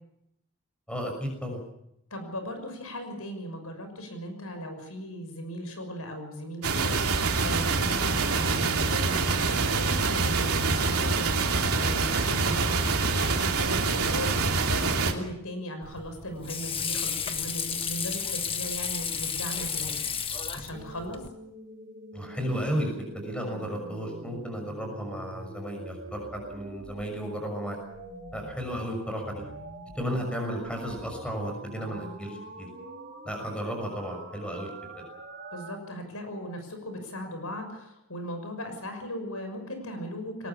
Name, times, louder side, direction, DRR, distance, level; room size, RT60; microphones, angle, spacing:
voice 1, 0.9-1.6 22.1-27.8 28.3-29.4 29.9-32.7 33.2-34.7 34.9-35.0, equal, 5° left, 3 dB, 6.2 m, -33 dB
voice 2, 2.1-21.2 35.5-40.5, equal, 80° left, 7 dB, 6.2 m, -38 dB
sound 1, 6.6-15.1, right 4 dB, 85° right, 3.0 m, -25 dB
Water / Sink (filling or washing), 15.8-21.3, left 6 dB, 25° left, 1.4 m, -32 dB
sound 2, 20.7-35.7, right 1 dB, 40° right, 6.3 m, -44 dB
22.5 x 20.0 x 7.1 m, 0.80 s
head